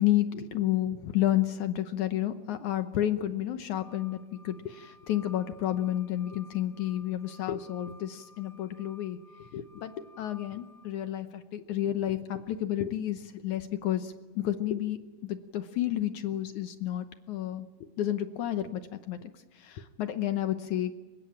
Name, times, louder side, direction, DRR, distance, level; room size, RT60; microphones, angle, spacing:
voice 1, 0.0-17.7 18.0-18.8 19.1-20.9, left 12 dB, 75° left, 9 dB, 1.8 m, -31 dB
sound 1, 3.8-10.9, left 1 dB, 45° left, 6.2 m, -55 dB
24.5 x 21.0 x 8.8 m, 1.2 s
omnidirectional pair, 4.7 m